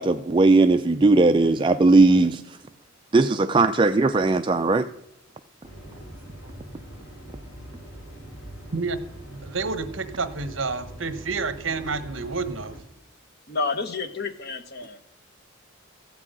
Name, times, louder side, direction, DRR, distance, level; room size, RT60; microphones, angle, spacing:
voice 1, 0.0-2.4 3.1-4.9, right 3 dB, 25° right, 7 dB, 0.4 m, -18 dB
sound 1, 5.6-12.8, right 1 dB, 75° left, 4.2 m, -42 dB
voice 2, 8.7-12.8, right 4 dB, 65° right, 12 dB, 1.1 m, -30 dB
voice 3, 13.5-15.0, left 4 dB, 50° left, 9 dB, 1.1 m, -30 dB
14.5 x 6.2 x 8.9 m, 0.82 s
head